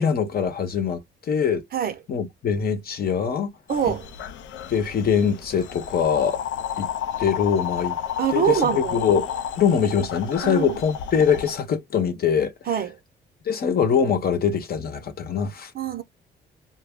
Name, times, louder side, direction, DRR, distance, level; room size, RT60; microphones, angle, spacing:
voice 1, 0.0-1.6 2.1-3.6 3.9-4.0 4.7-6.4 6.8-6.9 7.2-8.0 8.3-9.2 9.6-12.5 13.4-15.7, left 7 dB, 50° left, 0.8 m, -23 dB
sound 1, 3.7-11.6, left 9 dB, 75° left, 0.5 m, -32 dB
voice 2, 3.7-4.1 8.2-9.0 10.4-10.8 12.7-13.0 15.7-16.0, right 9 dB, 50° right, 0.6 m, -24 dB
2.2 x 2.0 x 3.5 m
cardioid pair, 90°, 20 cm